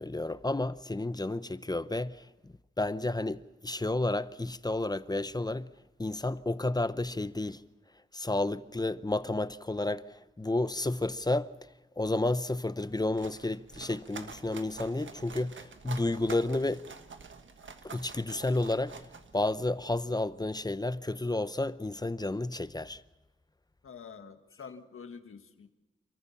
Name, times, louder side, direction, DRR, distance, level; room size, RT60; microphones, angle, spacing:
voice 1, 0.0-2.2 2.8-5.7 6.0-7.6 8.1-10.0 10.4-11.5 12.0-16.8 17.8-18.9 19.3-23.0, left 2 dB, 20° left, 0.7 m, -31 dB
sound 1, 12.9-19.8, right 5 dB, 65° right, 1.5 m, -47 dB
voice 2, 23.8-25.7, left 6 dB, 85° left, 1.7 m, -47 dB
29.0 x 14.0 x 7.3 m
wide cardioid pair, 80°, 21 cm